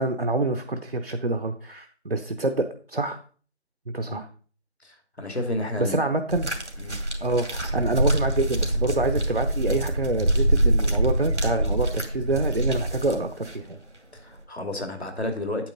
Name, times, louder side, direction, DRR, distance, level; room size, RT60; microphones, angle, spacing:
voice 1, 0.0-3.2 3.9-4.3 5.8-6.5 7.2-13.8, right 2 dB, 55° right, 7 dB, 0.9 m, -26 dB
voice 2, 4.8-6.0 6.8-7.0 14.1-15.7, left 1 dB, 70° left, 6 dB, 2.4 m, -31 dB
sound 1, 6.3-13.6 14.4-14.5, right 1 dB, 85° right, 2.2 m, -25 dB
8.8 x 7.9 x 3.9 m, 0.42 s
figure-of-eight pair, 175°, 34 cm